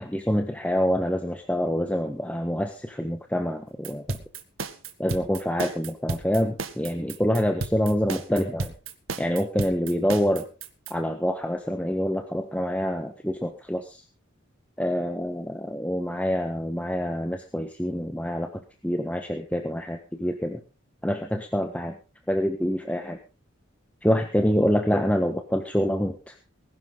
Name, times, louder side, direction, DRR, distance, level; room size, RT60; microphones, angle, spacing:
voice 1, 0.0-4.2 5.0-8.7 9.2-10.4 10.9-14.0 14.8-18.5 18.8-20.6 21.0-21.9 22.3-23.2 24.0-26.3, equal, 5° left, 5 dB, 1.3 m, -26 dB
sound 1, 3.8-10.9, right 3 dB, 80° right, 1.9 m, -33 dB
20.0 x 11.5 x 4.0 m, 0.33 s
head